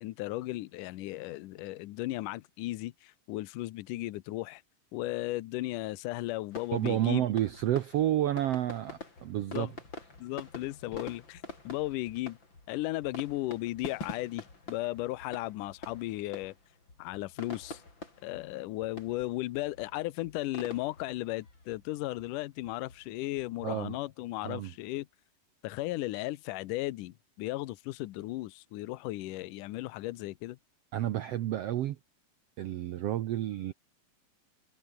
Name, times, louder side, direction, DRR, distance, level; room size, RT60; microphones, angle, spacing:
voice 1, 0.0-4.6 4.9-7.2 9.5-9.7 10.2-12.4 12.7-16.5 17.0-17.8 18.2-25.1 25.6-30.6, left 17 dB, 75° left, 2.3 m, -35 dB
sound 1, 6.5-24.1, left 3 dB, 30° left, 6.1 m, -47 dB
voice 2, 6.7-9.7 23.6-23.9 24.4-24.7 30.9-32.0 32.6-33.7, right 12 dB, 80° right, 1.4 m, -30 dB
omnidirectional pair, 4.0 m